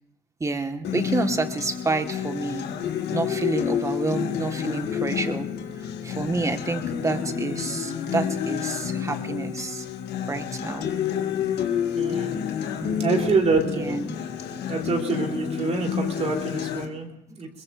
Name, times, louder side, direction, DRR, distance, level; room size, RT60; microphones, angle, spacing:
voice 1, 0.4-2.7 3.1-5.5 6.0-9.8 10.3-10.9 12.8-13.3 13.7-14.2, right 3 dB, 20° right, 7 dB, 1.5 m, -29 dB
Acoustic guitar, 0.8-16.9, left 8 dB, 75° left, 2.0 m, -29 dB
voice 2, 11.9-12.3 12.9-14.0 14.7-17.5, right 4 dB, 40° right, 1 dB, 3.4 m, -26 dB
22.0 x 21.5 x 2.6 m, 0.82 s
cardioid pair, 110°, 17 cm